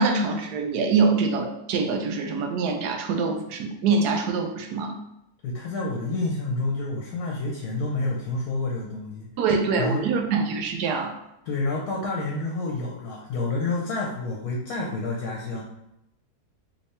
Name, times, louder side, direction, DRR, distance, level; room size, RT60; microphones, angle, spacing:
voice 1, 0.0-5.0 9.4-11.1, right 4 dB, 85° right, 4 dB, 1.2 m, -24 dB
voice 2, 5.4-9.3 9.8-10.0 11.4-15.6, left 2 dB, 70° left, -1 dB, 1.2 m, -29 dB
3.4 x 3.3 x 4.2 m, 0.83 s
omnidirectional pair, 1.7 m